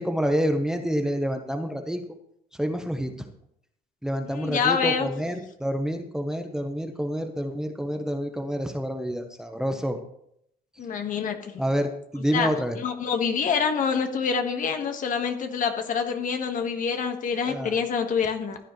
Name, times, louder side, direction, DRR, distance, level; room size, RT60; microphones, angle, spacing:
voice 1, 0.0-2.0 2.6-3.1 4.0-10.0 11.6-12.8 17.4-17.8, equal, 5° right, 5 dB, 1.0 m, -28 dB
voice 2, 4.3-5.1 10.8-11.5 12.3-12.5 12.8-18.6, left 6 dB, 50° left, 5 dB, 1.6 m, -26 dB
15.0 x 10.0 x 3.2 m, 0.74 s
cardioid pair, 110°, 17 cm